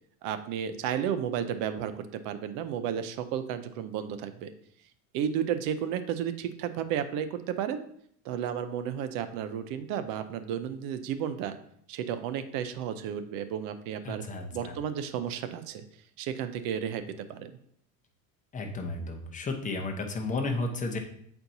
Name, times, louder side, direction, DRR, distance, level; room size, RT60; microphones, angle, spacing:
voice 1, 0.2-4.5 5.1-7.8 8.2-11.6 11.9-14.2 14.5-15.8 16.2-17.0 17.3-17.6, right 9 dB, 60° right, 10 dB, 0.6 m, -32 dB
voice 2, 14.0-14.7 18.5-21.0, left 3 dB, 20° left, 2 dB, 0.9 m, -33 dB
7.8 x 4.4 x 2.7 m, 0.67 s
supercardioid pair, 130°, 39 cm